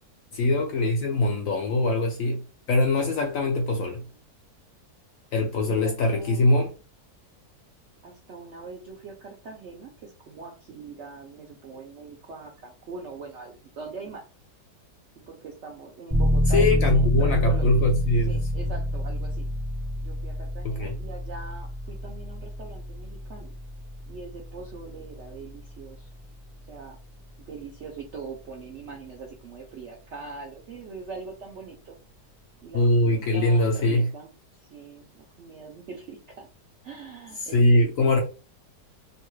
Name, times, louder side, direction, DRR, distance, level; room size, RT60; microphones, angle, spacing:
voice 1, 0.3-2.4 2.7-4.0 5.3-6.7 16.5-18.3 20.6-20.9 32.7-34.1 37.5-38.2, left 2 dB, 70° left, 0.8 m, -22 dB
voice 2, 3.5-4.2 5.6-6.5 8.0-14.3 15.2-17.9 18.3-19.4 20.0-23.5 24.1-26.1 26.7-27.0 27.4-32.0 32.6-34.3 34.6-36.5 36.8-38.2, right 4 dB, 70° right, 0.7 m, -42 dB
sound 1, 16.1-26.6, equal, 20° right, 0.3 m, -27 dB
2.9 x 2.3 x 3.1 m
omnidirectional pair, 1.8 m